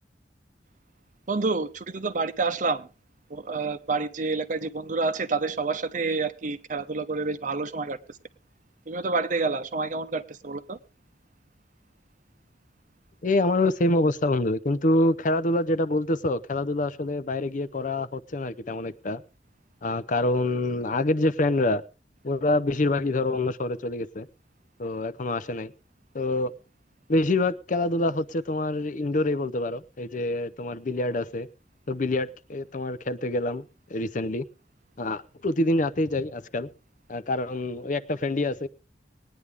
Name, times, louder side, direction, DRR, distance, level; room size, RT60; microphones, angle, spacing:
voice 1, 1.3-2.9 3.3-8.0 8.9-10.8, right 3 dB, 45° right, 11 dB, 0.8 m, -28 dB
voice 2, 13.2-19.2 19.8-21.8 22.2-24.3 24.8-25.7 26.1-26.5 27.1-31.5 31.9-34.4 35.0-36.7 37.1-38.7, left 2 dB, 45° left, 14 dB, 0.6 m, -26 dB
20.0 x 9.7 x 3.5 m, 0.32 s
head